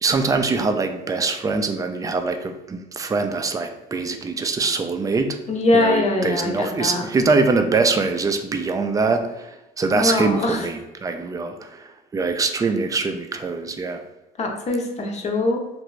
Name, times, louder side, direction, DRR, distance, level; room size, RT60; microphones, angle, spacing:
voice 1, 0.0-5.4 5.7-11.8 12.1-14.0, right 4 dB, 20° right, 6 dB, 0.3 m, -23 dB
voice 2, 5.5-7.0 9.9-10.7 14.4-15.6, left 2 dB, 40° left, 2 dB, 0.6 m, -22 dB
2.8 x 2.6 x 3.1 m, 0.97 s
cardioid pair, 110°, 17 cm